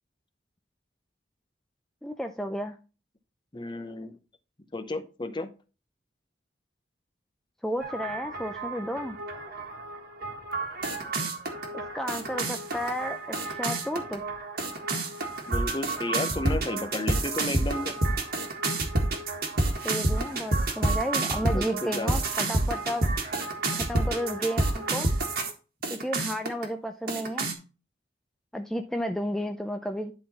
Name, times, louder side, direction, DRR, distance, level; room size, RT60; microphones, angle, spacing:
voice 1, 2.0-2.8 7.6-9.2 11.7-14.2 19.8-23.1 23.7-25.1 25.9-27.5 28.5-30.1, equal, 5° left, 5 dB, 0.5 m, -32 dB
voice 2, 3.5-4.2 4.7-5.5 15.5-17.9 21.4-22.1, left 2 dB, 25° left, 9 dB, 0.8 m, -33 dB
sound 1, 7.8-25.5 25.8-26.6 27.1-27.5, right 2 dB, 55° right, 1.6 m, -29 dB
11.0 x 3.9 x 4.1 m, 0.34 s
head